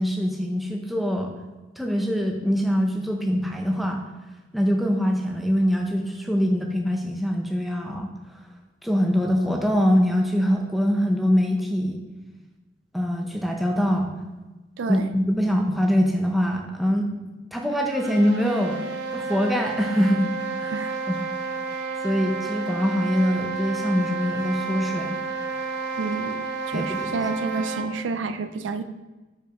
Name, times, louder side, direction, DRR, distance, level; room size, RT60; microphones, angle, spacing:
voice 1, 0.0-1.3 1.8-4.0 4.5-8.1 8.8-12.0 12.9-14.1 14.9-17.1 17.5-18.8 19.1-20.3 20.6-20.7 21.2-21.3 22.0-25.2 26.7-27.2, equal, ahead, 1 dB, 0.6 m, -23 dB
voice 2, 14.8-15.1 20.7-20.9 26.0-28.8, right 4 dB, 85° right, 10 dB, 0.4 m, -29 dB
sound 1, 17.7-28.0, right 4 dB, 60° right, 0.8 m, -31 dB
5.3 x 4.8 x 4.9 m, 1.1 s
head